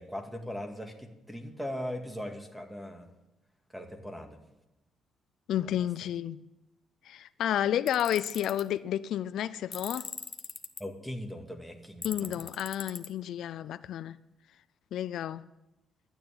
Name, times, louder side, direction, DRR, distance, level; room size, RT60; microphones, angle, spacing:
voice 1, 0.0-3.1 3.7-4.4 5.6-5.9 10.8-12.4, equal, 5° right, 2.1 m, -39 dB
voice 2, 5.5-6.4 7.0-10.1 12.0-14.2 14.9-15.4, left 11 dB, 75° left, 0.4 m, -31 dB
Tools, 7.9-8.6 9.7-10.8 12.0-13.1, left 4 dB, 35° left, 1.0 m, -40 dB
12.0 x 9.2 x 8.7 m
cardioid pair, 90°, 0 cm